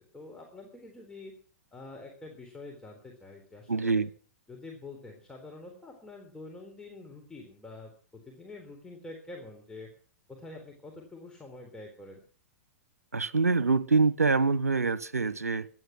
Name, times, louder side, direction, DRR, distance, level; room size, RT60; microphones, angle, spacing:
voice 1, 0.1-1.3 1.7-4.0 4.5-7.9 8.3-9.9 10.3-12.2, left 2 dB, 10° left, 3.9 m, -46 dB
voice 2, 3.7-4.1 13.1-15.7, right 4 dB, 85° right, 0.9 m, -25 dB
17.0 x 12.0 x 6.0 m
figure-of-eight pair, 105°, 8 cm